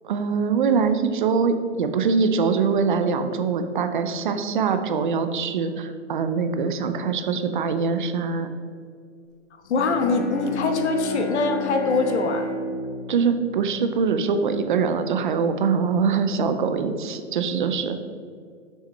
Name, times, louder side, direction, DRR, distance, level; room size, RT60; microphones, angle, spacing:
voice 1, 0.0-8.5 13.1-18.0, right 5 dB, 45° right, 8 dB, 0.5 m, -23 dB
voice 2, 9.7-12.4, left 3 dB, 65° left, 5 dB, 1.0 m, -23 dB
Bowed string instrument, 9.7-14.6, left 1 dB, 35° left, 1.2 m, -33 dB
6.5 x 6.0 x 3.2 m, 2.2 s
hypercardioid pair, 155°, 37 cm